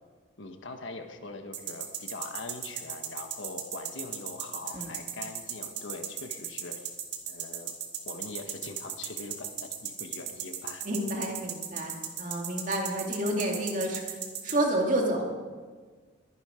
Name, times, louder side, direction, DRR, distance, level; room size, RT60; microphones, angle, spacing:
voice 1, 0.4-6.9 7.3-7.8 8.1-10.8, left 3 dB, 65° left, 5 dB, 1.3 m, -42 dB
sound 1, 1.5-14.5, right 10 dB, 55° right, 2.0 m, -36 dB
voice 2, 10.8-14.0 14.4-15.2, right 1 dB, 40° right, 1 dB, 2.4 m, -29 dB
22.0 x 10.5 x 5.1 m, 1.5 s
head